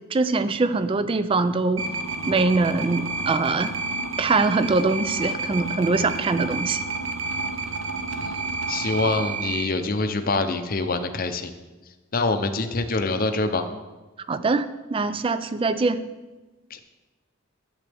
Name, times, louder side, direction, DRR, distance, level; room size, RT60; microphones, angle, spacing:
voice 1, 0.0-1.8 2.3-3.7 4.2-6.8 14.3-16.0, right 3 dB, 25° right, 13 dB, 0.3 m, -23 dB
sound 1, 1.8-9.6, right 3 dB, 70° right, 0.8 m, -30 dB
voice 2, 8.1-11.5 12.1-13.7 16.7-16.8, left 3 dB, 45° left, 8 dB, 0.6 m, -25 dB
11.0 x 8.1 x 3.5 m, 1.2 s
head